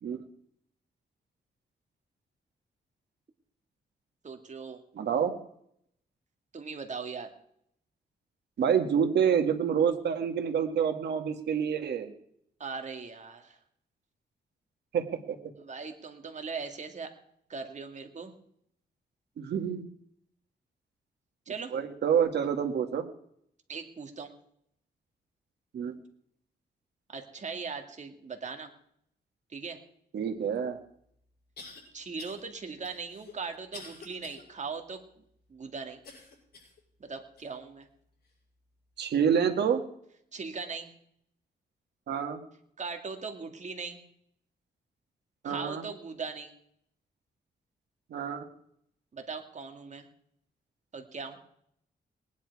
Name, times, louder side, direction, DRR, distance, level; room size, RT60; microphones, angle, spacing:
voice 1, 4.2-4.8 6.5-7.3 12.6-13.6 15.6-17.1 17.5-18.3 21.5-21.7 23.7-24.3 27.1-28.7 29.5-29.8 31.9-35.0 35.5-36.0 37.0-37.9 40.3-40.9 42.8-44.0 45.4-46.5 49.1-50.1 50.9-51.4, right 5 dB, 45° right, 5 dB, 2.2 m, -39 dB
voice 2, 4.9-5.3 8.6-12.1 14.9-15.4 19.4-19.9 21.7-23.0 25.7-25.9 30.1-30.8 39.0-39.8 42.1-42.4 45.4-45.8 48.1-48.5, right 7 dB, 75° right, 6 dB, 1.9 m, -27 dB
sound 1, 30.6-30.7 31.6-31.8 32.2-32.4 32.8-34.4 34.9-35.0 36.0-36.8 37.4-37.5 38.2-38.3, left 4 dB, 65° left, 7.0 m, -47 dB
19.5 x 10.5 x 4.8 m, 0.70 s
cardioid pair, 95°, 17 cm